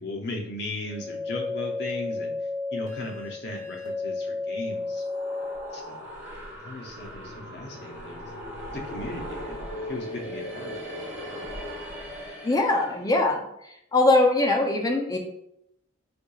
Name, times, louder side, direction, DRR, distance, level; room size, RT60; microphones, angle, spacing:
voice 1, 0.0-2.3 2.7-5.0 5.7-6.1 6.6-8.2 8.7-11.5, left 2 dB, 60° left, 1 dB, 0.6 m, -37 dB
sound 1, 0.9-5.8, left 3 dB, 25° right, 1.1 m, -32 dB
sound 2, 4.7-13.1, equal, 10° right, 1.0 m, -38 dB
voice 2, 12.4-13.4 13.9-15.2, left 2 dB, 20° left, 2 dB, 0.4 m, -21 dB
4.4 x 2.7 x 2.3 m, 0.79 s
head